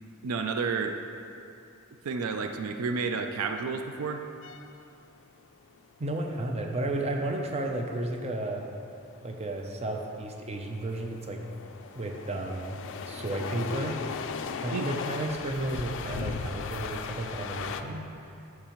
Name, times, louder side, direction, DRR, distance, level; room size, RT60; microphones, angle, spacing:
voice 1, 0.2-1.0 2.0-4.2 14.7-14.9, right 5 dB, 75° right, 6 dB, 0.4 m, -30 dB
sound 1, 4.4-17.8, left 5 dB, 60° left, 0.3 m, -38 dB
voice 2, 6.0-8.7 9.2-11.4 11.9-12.8 13.1-14.0 14.6-18.0, right 1 dB, 30° right, 2 dB, 0.5 m, -33 dB
12.0 x 4.6 x 3.0 m, 2.7 s
head